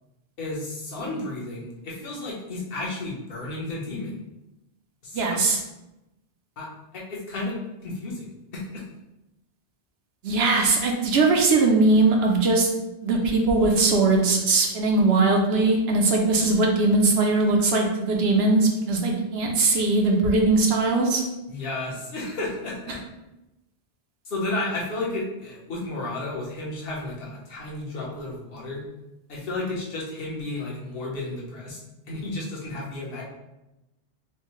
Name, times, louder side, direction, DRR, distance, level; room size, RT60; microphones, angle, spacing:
voice 1, 0.4-4.2 5.0-5.4 6.6-8.8 21.5-23.0 24.2-28.8 29.3-31.8 32.1-33.2, left 2 dB, 55° left, -4 dB, 1.1 m, -32 dB
voice 2, 5.1-5.6 10.2-12.7 13.0-21.2, right 3 dB, 65° right, 1 dB, 0.8 m, -20 dB
4.4 x 2.1 x 3.0 m, 0.95 s
omnidirectional pair, 1.2 m